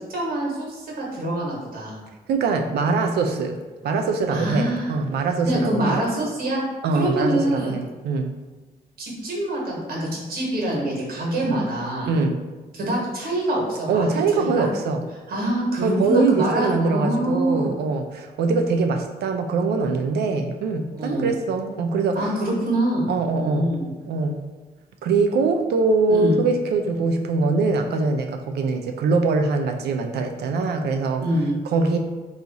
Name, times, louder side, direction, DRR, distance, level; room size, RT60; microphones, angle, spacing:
voice 1, 0.1-2.0 4.3-4.9 5.4-6.6 6.9-7.8 9.0-12.1 12.7-14.1 14.3-14.7 15.3-17.8 20.9-21.3 22.1-23.9 26.1-26.4 31.2-31.6, right 1 dB, 65° right, -2 dB, 1.1 m, -25 dB
voice 2, 2.3-3.6 3.8-6.0 6.8-8.3 12.0-12.4 13.9-15.0 15.8-22.3 23.1-23.7 24.1-24.4 25.0-31.2 31.7-32.0, right 4 dB, 85° right, 4 dB, 0.4 m, -23 dB
2.9 x 2.4 x 3.7 m, 1.2 s
cardioid pair, 85°, 16 cm